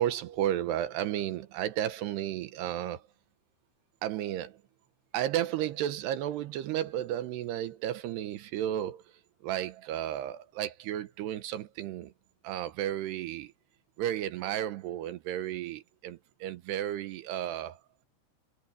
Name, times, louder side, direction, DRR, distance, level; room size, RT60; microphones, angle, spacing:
voice 1, 0.0-3.0 4.0-4.6 5.1-9.0 9.4-12.1 12.4-13.5 14.0-17.8, right 11 dB, 80° right, 3.1 m, -33 dB
omnidirectional pair, 4.9 m